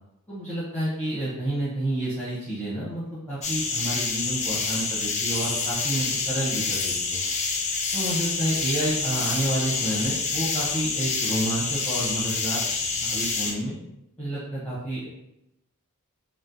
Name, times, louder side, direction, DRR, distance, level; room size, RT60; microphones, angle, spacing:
voice 1, 0.3-7.2 7.9-13.8 14.2-15.1, right 1 dB, 5° left, -10 dB, 0.9 m, -30 dB
sound 1, 3.4-13.5, left 4 dB, 30° left, 0.4 m, -27 dB
4.1 x 2.1 x 2.6 m, 0.87 s
head